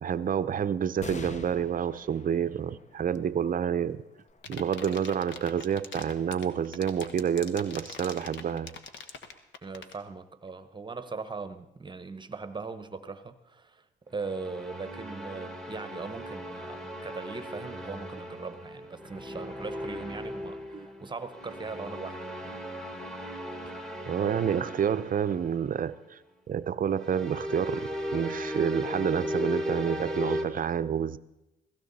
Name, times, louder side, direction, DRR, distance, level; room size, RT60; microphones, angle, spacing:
voice 1, 0.0-4.0 4.5-8.7 20.7-20.9 24.1-26.2 26.5-31.2, right 8 dB, 45° right, 13 dB, 0.6 m, -29 dB
sound 1, 1.0-7.9 8.5-8.6 9.7-10.3, left 4 dB, 35° left, 1.0 m, -49 dB
sound 2, 4.3-10.0, left 6 dB, 70° left, 1.4 m, -41 dB
voice 2, 9.6-22.6, right 4 dB, 25° right, 11 dB, 1.0 m, -40 dB
sound 3, 14.1-26.1 26.9-30.4, equal, 5° left, 1.7 m, -37 dB
16.5 x 15.5 x 4.1 m, 0.92 s
cardioid pair, 90°, 20 cm